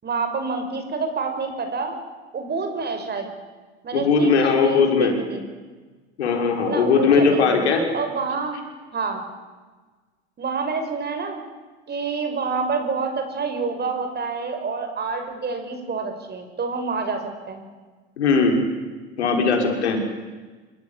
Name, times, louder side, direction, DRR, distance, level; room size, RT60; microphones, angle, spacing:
voice 1, 0.0-2.0 2.3-3.3 3.8-5.4 6.6-7.6 7.9-8.6 8.9-9.2 10.4-11.4 11.9-17.2 17.5-17.6, right 4 dB, 30° right, 7 dB, 5.7 m, -27 dB
voice 2, 3.9-5.1 6.2-7.8 18.2-18.6 19.2-20.0, left 5 dB, 80° left, 3 dB, 6.0 m, -19 dB
26.0 x 24.5 x 8.9 m, 1.3 s
hypercardioid pair, 80°, 33 cm